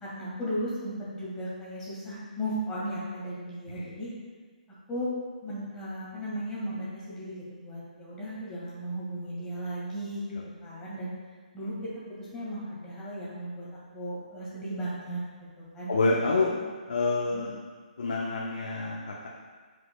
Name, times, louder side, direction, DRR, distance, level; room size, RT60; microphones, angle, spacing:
voice 1, 0.0-4.1 4.9-5.1 5.4-10.3 10.6-11.1 11.5-11.7 12.1-15.2 15.7-15.9 17.3-17.5, equal, 15° left, -8 dB, 1.9 m, -36 dB
voice 2, 15.9-16.5 16.9-17.5 18.0-19.3, left 3 dB, 65° left, -3 dB, 0.8 m, -27 dB
9.5 x 5.0 x 2.3 m, 1.5 s
figure-of-eight pair, 135°, 5 cm